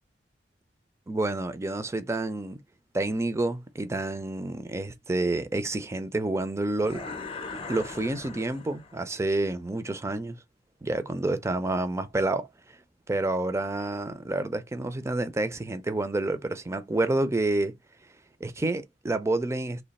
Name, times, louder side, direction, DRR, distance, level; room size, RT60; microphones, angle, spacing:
voice 1, 1.1-2.6 2.9-7.0 7.7-10.4 10.8-12.5 13.1-17.7 18.4-19.8, right 2 dB, 15° right, 0.4 m, -29 dB
sound 1, 6.8-9.1, left 4 dB, 30° left, 0.7 m, -39 dB
3.2 x 2.3 x 4.0 m
head